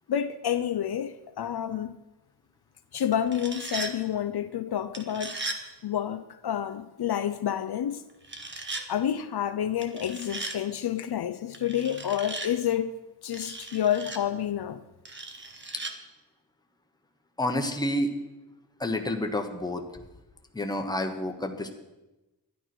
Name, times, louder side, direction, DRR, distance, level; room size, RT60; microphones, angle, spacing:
voice 1, 0.1-1.9 2.9-5.4 5.8-8.0 8.9-12.9 13.2-14.8, left 10 dB, 65° left, 0.6 m, -29 dB
sound 1, 3.1-3.9 4.9-5.6 8.2-8.9 9.8-10.6 11.5-12.5 13.3-14.2 15.1-15.9, right 2 dB, 30° right, 1.1 m, -37 dB
voice 2, 17.4-18.1 18.8-19.8 20.5-21.7, left 1 dB, 10° left, 1.1 m, -29 dB
12.5 x 11.0 x 6.0 m
wide cardioid pair, 165°, 41 cm